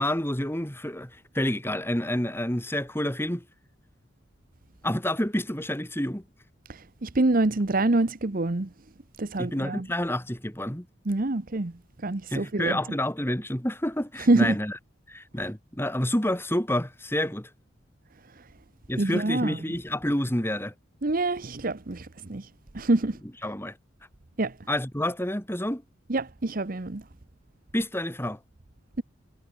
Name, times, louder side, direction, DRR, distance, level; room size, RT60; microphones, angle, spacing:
voice 1, 0.0-3.4 4.8-6.2 9.4-10.9 12.3-14.8 15.1-17.5 18.9-20.7 23.4-23.8 24.7-25.8 27.7-28.4, left 1 dB, 10° left, 3.4 m, -28 dB
voice 2, 6.7-8.7 9.2-9.9 11.1-12.8 14.2-14.5 18.4-18.5 19.0-19.6 21.0-22.5 22.7-23.2 24.4-24.5 26.1-27.0, right 2 dB, 50° right, 1.0 m, -26 dB
head